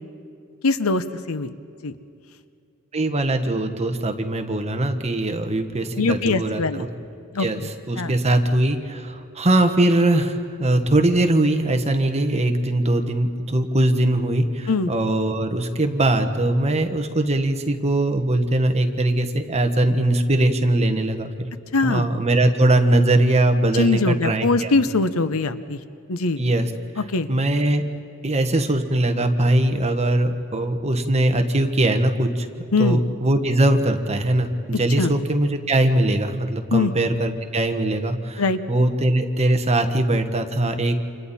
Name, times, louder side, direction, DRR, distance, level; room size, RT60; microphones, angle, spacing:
voice 1, 0.6-1.5 1.8-1.9 6.0-6.8 7.3-7.7 8.0-8.1 14.7-14.9 21.7-22.1 23.7-25.8 26.1-26.4 27.0-27.3 32.7-33.0 35.0-35.1 36.7-36.9 38.4-38.6, left 3 dB, 70° left, 12 dB, 0.8 m, -22 dB
voice 2, 2.9-6.9 7.4-7.6 7.9-21.5 21.8-24.8 26.4-26.7 27.3-27.8 28.2-32.5 32.8-40.9, right 1 dB, 30° right, 6 dB, 1.3 m, -21 dB
29.0 x 27.0 x 4.3 m, 2.4 s
head